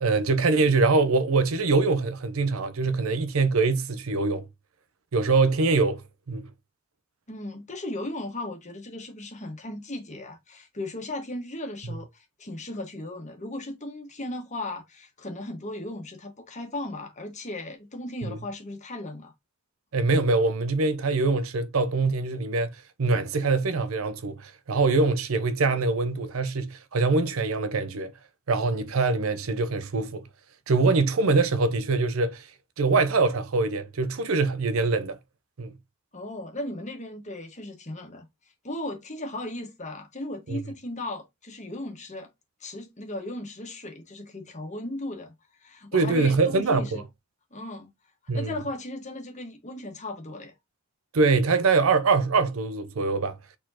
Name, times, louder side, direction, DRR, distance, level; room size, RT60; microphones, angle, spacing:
voice 1, 0.0-4.5 5.1-6.0 6.3-6.5 18.3-18.4 19.9-28.1 28.5-30.3 30.7-32.5 32.8-35.2 35.6-35.7 40.5-40.6 45.9-47.0 48.3-48.6 51.1-53.4, right 3 dB, 80° right, 0.6 m, -23 dB
voice 2, 7.3-19.3 36.1-38.2 38.6-42.3 42.6-45.3 45.6-47.0 47.5-47.9 48.3-50.5, left 1 dB, 35° left, 1.5 m, -36 dB
4.3 x 4.2 x 2.8 m
head